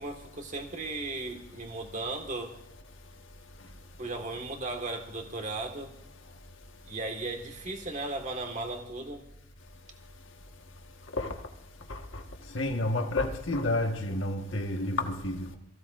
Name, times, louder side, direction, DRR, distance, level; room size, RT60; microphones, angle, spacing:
voice 1, 0.0-2.5 4.0-5.9 6.8-9.2, right 2 dB, 40° right, 1.8 m, -36 dB
voice 2, 12.5-15.6, left 2 dB, 65° left, 1.5 m, -30 dB
22.5 x 15.5 x 2.6 m
head